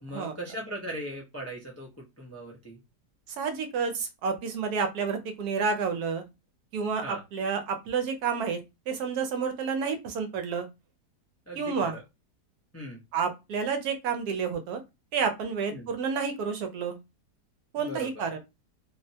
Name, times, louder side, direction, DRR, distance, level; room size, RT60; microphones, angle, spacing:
voice 1, 0.0-2.8 7.0-7.2 11.5-12.0 12.7-13.0 15.7-15.9 17.8-18.2, right 1 dB, 25° left, -3 dB, 0.3 m, -39 dB
voice 2, 3.3-6.2 6.7-8.6 8.9-10.7 11.6-12.0 13.1-14.8 15.1-17.0 17.7-18.4, right 5 dB, 70° right, 6 dB, 1.1 m, -30 dB
3.3 x 2.1 x 2.7 m, 0.23 s
omnidirectional pair, 1.7 m